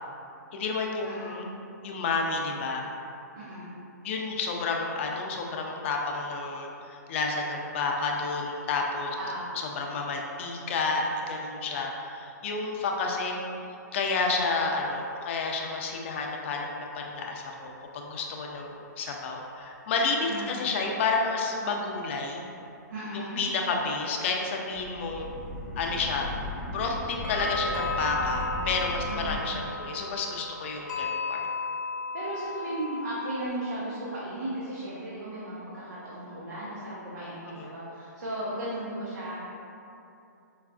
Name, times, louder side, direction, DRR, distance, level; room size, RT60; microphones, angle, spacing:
voice 1, 0.5-1.4 1.8-2.9 4.0-9.2 9.6-13.4 13.9-17.7 18.0-22.4 23.1-25.3 25.8-26.3 26.6-31.5 37.6-37.7, left 4 dB, 40° left, 1 dB, 0.4 m, -30 dB
voice 2, 1.0-1.4 3.3-3.7 9.2-9.5 20.3-20.6 22.9-23.4 29.1-29.4 32.1-39.4, right 1 dB, 85° right, -9 dB, 0.8 m, -36 dB
sound 1, 14.5-16.6 26.0-26.1 27.2-33.5, left 3 dB, 80° left, 0.8 m, -35 dB
sound 2, 24.7-29.4, left 1 dB, 5° left, 0.9 m, -37 dB
4.5 x 2.4 x 2.3 m, 2.7 s
hypercardioid pair, 150°, 10 cm